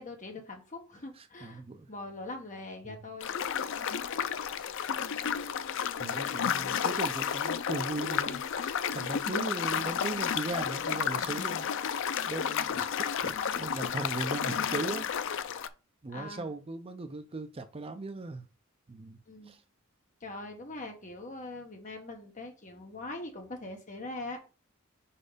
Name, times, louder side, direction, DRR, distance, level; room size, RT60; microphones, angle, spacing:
voice 1, 0.0-1.6 1.9-3.3 16.1-16.5 19.3-19.5 20.2-24.4, left 2 dB, 35° left, 1.4 m, -42 dB
voice 2, 1.2-1.9 2.8-3.0 6.0-11.7 12.3-15.4 16.0-18.5 18.9-19.2 19.4-19.6, right 3 dB, 25° right, 0.5 m, -38 dB
sound 1, 3.2-15.7, left 8 dB, 60° left, 0.4 m, -32 dB
4.7 x 4.2 x 5.0 m
head